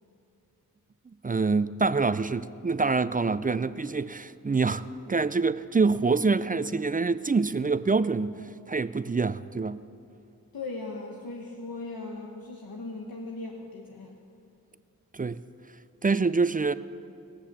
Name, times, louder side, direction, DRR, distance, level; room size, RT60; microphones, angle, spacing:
voice 1, 1.2-8.3 8.7-9.8 15.1-15.4 16.0-16.7, right 4 dB, 25° right, 0.3 m, -26 dB
voice 2, 10.5-14.2, left 3 dB, 80° left, 1.1 m, -38 dB
19.0 x 6.7 x 7.3 m
wide cardioid pair, 50°, 36 cm